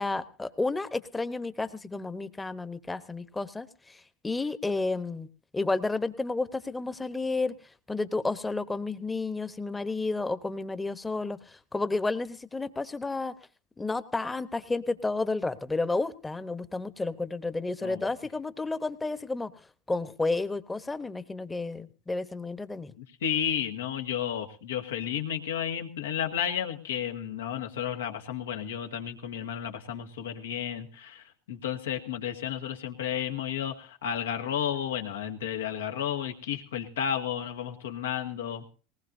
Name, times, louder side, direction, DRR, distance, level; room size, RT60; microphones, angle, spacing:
voice 1, 0.0-5.3 5.5-7.5 7.9-13.3 13.8-19.5 19.9-22.9, left 3 dB, 15° left, 13 dB, 1.0 m, -31 dB
voice 2, 23.0-38.7, left 9 dB, 85° left, 5 dB, 1.6 m, -32 dB
19.5 x 19.0 x 2.7 m, 0.35 s
hypercardioid pair, 85°, 0 cm